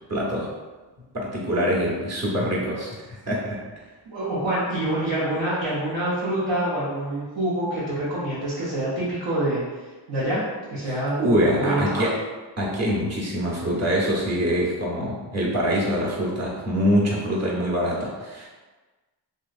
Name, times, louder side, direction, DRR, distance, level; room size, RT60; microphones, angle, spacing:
voice 1, 0.1-0.5 1.1-3.6 10.8-12.2 12.6-18.5, equal, 35° right, -5 dB, 0.9 m, -24 dB
voice 2, 4.1-9.6 10.1-10.4 10.7-11.3 11.6-12.0, right 1 dB, 90° right, -10 dB, 0.9 m, -26 dB
2.8 x 2.7 x 2.4 m, 1.3 s
cardioid pair, 70°, 43 cm